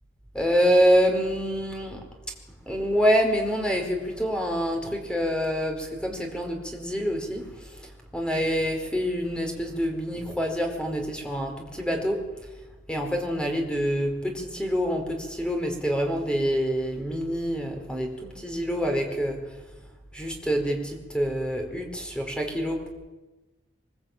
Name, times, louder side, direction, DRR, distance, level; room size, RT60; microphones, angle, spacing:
voice 1, 0.3-2.0 2.7-12.2 12.9-19.4 20.1-22.9, equal, 5° left, 3 dB, 4.7 m, -26 dB
23.5 x 22.5 x 9.1 m, 1.1 s
head